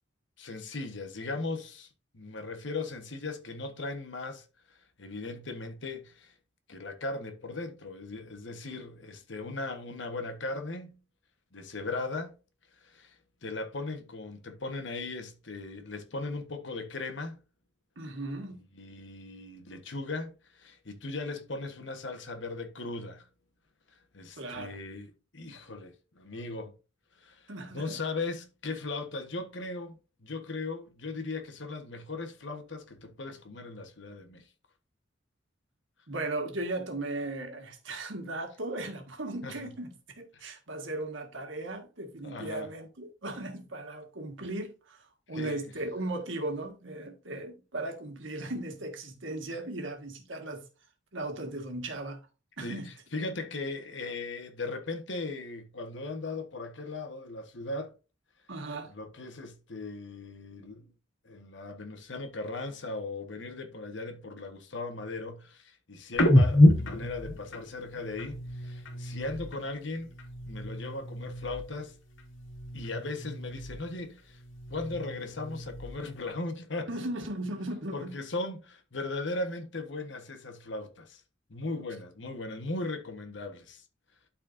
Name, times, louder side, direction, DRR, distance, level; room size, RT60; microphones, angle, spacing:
voice 1, 0.4-6.3 6.7-11.0 11.5-12.4 12.8-17.4 18.7-23.3 24.1-26.7 27.2-34.4 39.4-39.6 40.3-40.4 42.2-42.7 45.3-45.6 52.6-57.9 58.9-60.9 61.2-70.1 70.5-72.0 72.7-74.4 74.7-76.9 77.9-81.2 81.5-83.8, left 3 dB, 70° left, 1.3 m, -38 dB
voice 2, 18.0-18.6 24.4-24.8 27.5-28.0 36.1-50.6 51.1-52.2 52.6-52.9 58.5-58.9 76.9-78.1, right 2 dB, 80° right, 1.7 m, -37 dB
sound 1, 66.1-69.7 70.0-71.9 72.1-74.0 74.4-76.2, left 1 dB, 85° left, 1.9 m, -28 dB
12.0 x 4.3 x 2.6 m
head